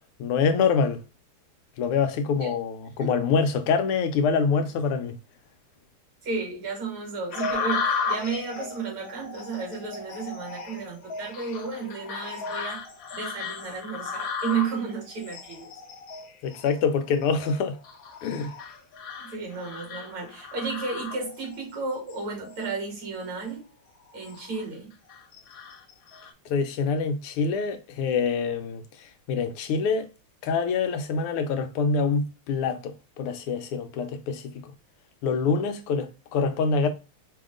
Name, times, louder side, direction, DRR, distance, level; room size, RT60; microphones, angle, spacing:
voice 1, 0.2-1.0 1.8-5.2 16.4-17.8 18.2-18.5 26.5-30.1 30.4-34.7 35.2-36.9, left 5 dB, 85° left, 1.7 m, -25 dB
voice 2, 6.2-12.9 13.1-15.7 19.2-23.7 24.1-24.9, right 4 dB, 75° right, 2.8 m, -33 dB
sound 1, 7.3-21.6 22.1-22.7 23.2-23.4 24.0-24.6 25.1-26.3, left 5 dB, 70° left, 0.8 m, -35 dB
5.1 x 2.8 x 3.7 m
omnidirectional pair, 2.4 m